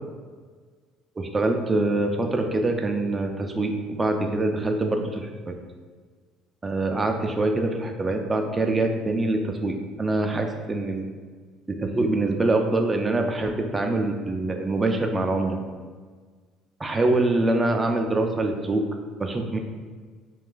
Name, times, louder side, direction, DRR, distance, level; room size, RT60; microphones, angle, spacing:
voice 1, 1.2-5.5 6.6-11.1 11.7-15.6 16.8-18.8 19.2-19.6, right 2 dB, 25° right, 4 dB, 0.3 m, -24 dB
2.4 x 2.4 x 3.7 m, 1.6 s
hypercardioid pair, 60°, 0 cm